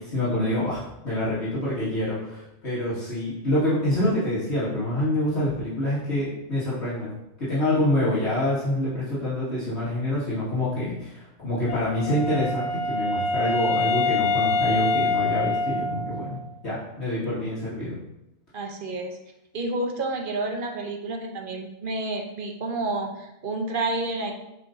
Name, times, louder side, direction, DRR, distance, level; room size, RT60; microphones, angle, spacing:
voice 1, 0.0-16.4 16.6-18.0, left 1 dB, 60° left, -11 dB, 2.5 m, -26 dB
Wind instrument woodwind instrument, 11.7-16.5, left 3 dB, 75° left, 0.3 m, -25 dB
voice 2, 18.5-19.2 19.5-24.3, right 2 dB, 45° right, 2 dB, 0.9 m, -29 dB
7.8 x 4.7 x 2.8 m, 0.88 s
omnidirectional pair, 1.3 m